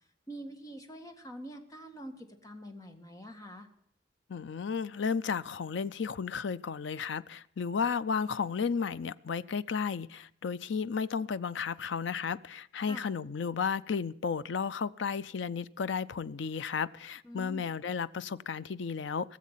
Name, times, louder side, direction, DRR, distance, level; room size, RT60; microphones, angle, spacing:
voice 1, 0.3-3.7 12.9-13.1 17.2-17.6, right 1 dB, 20° left, 1.7 m, -45 dB
voice 2, 4.3-19.4, left 6 dB, 70° left, 0.5 m, -33 dB
18.0 x 7.5 x 7.3 m
head